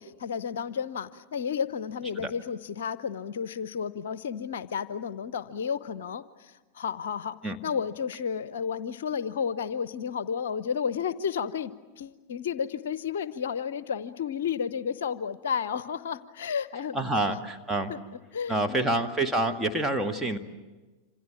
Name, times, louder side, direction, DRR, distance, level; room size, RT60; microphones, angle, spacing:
voice 1, 0.0-7.4 7.6-17.4 17.9-18.0 18.3-19.1, left 7 dB, 60° left, 16 dB, 0.8 m, -32 dB
voice 2, 16.9-17.9 18.5-20.4, right 2 dB, 10° right, 5 dB, 1.9 m, -27 dB
27.0 x 27.0 x 7.4 m, 1.2 s
figure-of-eight pair, 90°, 0 cm